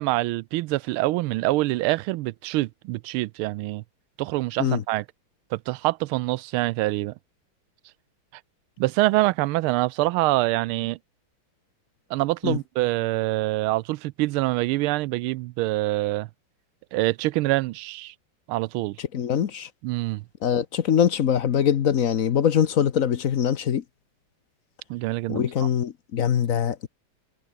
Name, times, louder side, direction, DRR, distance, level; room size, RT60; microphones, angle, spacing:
voice 1, 0.0-3.8 4.2-5.0 5.5-7.1 8.8-11.0 12.1-16.3 16.9-18.1 18.5-19.0 19.8-20.2 24.9-25.5, right 19 dB, 85° right, 1.4 m, -25 dB
voice 2, 19.1-19.7 20.4-23.8 25.3-26.9, left 8 dB, 50° left, 1.1 m, -23 dB
omnidirectional pair, 2.3 m